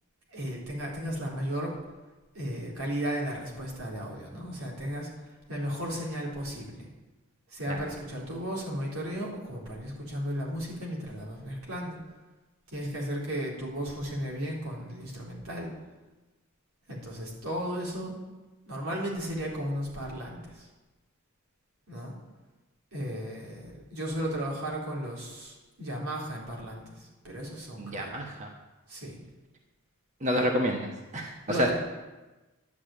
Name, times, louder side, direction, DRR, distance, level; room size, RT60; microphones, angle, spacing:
voice 1, 0.3-1.7 2.3-5.1 5.5-6.9 7.5-12.0 12.7-15.7 16.9-18.1 18.7-20.7 21.9-22.1 22.9-28.1 28.9-29.2 31.5-31.7, equal, 85° right, -3 dB, 4.0 m, -35 dB
voice 2, 27.8-28.5 30.2-31.3 31.6-31.7, equal, 35° right, 1 dB, 1.2 m, -29 dB
11.0 x 8.3 x 8.6 m, 1.2 s
head